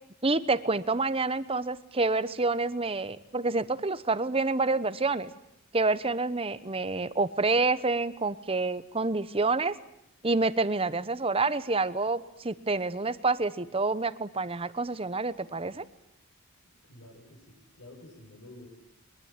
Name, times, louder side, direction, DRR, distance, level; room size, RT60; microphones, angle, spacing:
voice 1, 0.2-5.3 5.7-9.7 10.2-15.8, right 3 dB, 25° right, 15 dB, 1.0 m, -28 dB
voice 2, 16.8-18.7, left 1 dB, 60° left, 2 dB, 6.7 m, -50 dB
23.0 x 22.0 x 9.0 m, 0.80 s
head